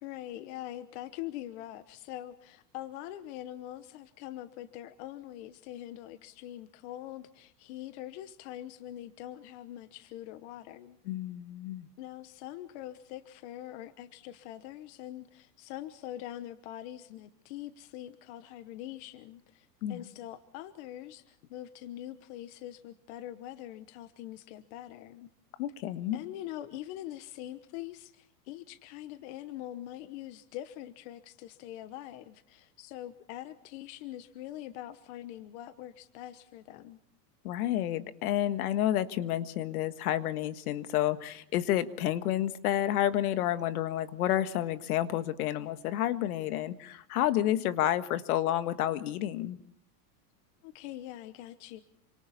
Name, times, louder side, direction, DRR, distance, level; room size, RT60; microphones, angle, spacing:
voice 1, 0.0-11.0 12.0-25.3 26.1-37.0 50.6-51.8, left 13 dB, 40° left, 11 dB, 1.1 m, -43 dB
voice 2, 11.0-11.9 19.8-20.1 25.6-26.2 37.4-49.6, left 12 dB, 60° left, 11 dB, 1.7 m, -30 dB
28.5 x 26.0 x 4.2 m, 0.65 s
supercardioid pair, 160°, 49 cm